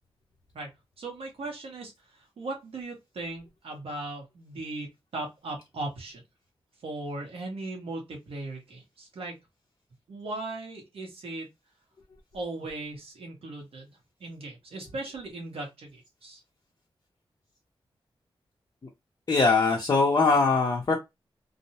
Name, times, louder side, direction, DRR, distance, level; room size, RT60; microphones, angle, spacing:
voice 1, 1.0-4.9 5.1-6.2 6.8-9.3 10.1-11.5 12.3-13.9 14.2-16.4, right 2 dB, 80° right, 1.0 m, -38 dB
voice 2, 19.3-21.0, left 4 dB, 40° left, 0.6 m, -22 dB
2.5 x 2.0 x 2.7 m
wide cardioid pair, 150°, 10 cm